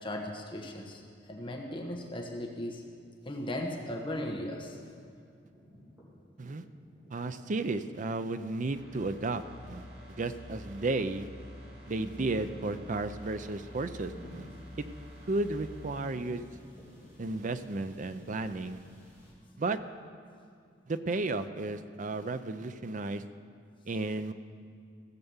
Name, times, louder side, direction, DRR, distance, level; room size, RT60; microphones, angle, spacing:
voice 1, 0.0-1.0 1.3-2.8 3.3-4.8, left 1 dB, 30° left, 1 dB, 1.1 m, -37 dB
sound 1, 5.3-19.3, equal, 15° right, 3.4 m, -53 dB
voice 2, 7.1-9.8 10.2-11.3 11.9-14.5 14.8-14.9 15.3-16.4 17.2-18.8 19.6-19.8 20.9-23.2 23.9-24.3, right 2 dB, 45° right, 11 dB, 0.5 m, -33 dB
sound 2, 8.7-17.4 17.7-17.9, left 1 dB, 60° right, 2.0 m, -49 dB
16.0 x 6.8 x 7.2 m, 2.3 s
head